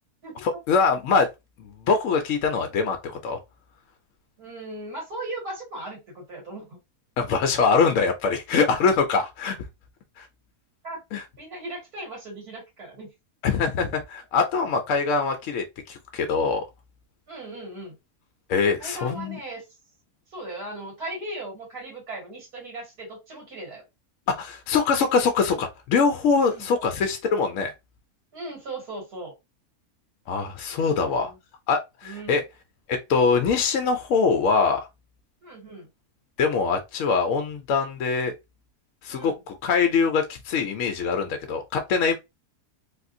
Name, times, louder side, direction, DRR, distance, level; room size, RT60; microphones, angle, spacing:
voice 1, 0.4-1.3 1.6-3.4 7.2-9.6 10.2-10.3 11.1-11.2 13.4-16.7 18.5-19.4 24.3-27.7 30.3-31.3 31.7-32.4 32.9-34.8 36.4-38.3 39.0-39.3 39.6-42.2, left 5 dB, 65° left, 0.8 m, -23 dB
voice 2, 4.4-6.8 10.8-11.0 11.4-13.1 17.3-18.0 18.8-19.6 20.3-23.8 26.5-26.7 28.3-29.3 31.0-31.4 32.0-32.4 35.4-35.9 39.1-39.4, right 2 dB, 70° right, 2.2 m, -37 dB
3.5 x 2.5 x 2.5 m
omnidirectional pair, 1.6 m